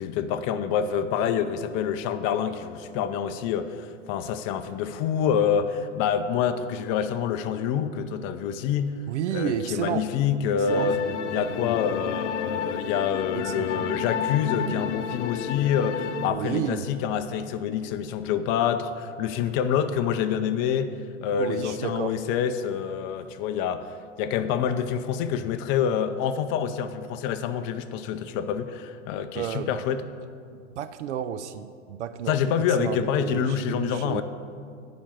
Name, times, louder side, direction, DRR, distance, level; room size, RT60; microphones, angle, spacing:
voice 1, 0.0-9.0 9.3-11.0 11.3-20.9 21.2-23.9 24.2-30.1 32.3-34.2, left 8 dB, 35° left, 9 dB, 0.5 m, -27 dB
voice 2, 9.1-10.0 10.7-11.1 13.3-13.9 16.3-16.9 21.4-22.2 29.3-29.8 30.5-32.4 32.8-34.2, right 10 dB, 65° right, 12 dB, 0.6 m, -31 dB
sound 1, 10.7-16.3, left 7 dB, 65° left, 0.8 m, -31 dB
10.0 x 5.1 x 7.5 m, 2.3 s
hypercardioid pair, 105°, 38 cm